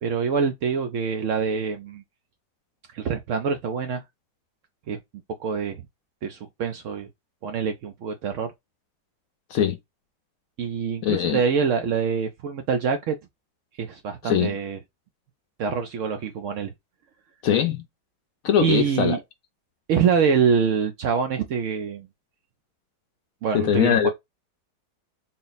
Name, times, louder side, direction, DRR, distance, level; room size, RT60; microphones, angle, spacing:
voice 1, 0.0-2.0 2.9-4.0 4.9-5.0 5.4-5.8 6.2-7.1 7.4-8.5 10.6-13.2 13.8-14.8 15.6-16.7 18.6-19.2 19.9-22.1 23.4-24.1, right 6 dB, 75° right, 0.7 m, -25 dB
voice 2, 11.0-11.4 14.2-14.5 17.4-17.8 18.4-19.2 23.5-24.1, left 9 dB, 70° left, 0.8 m, -21 dB
4.0 x 2.0 x 3.9 m
omnidirectional pair, 1.8 m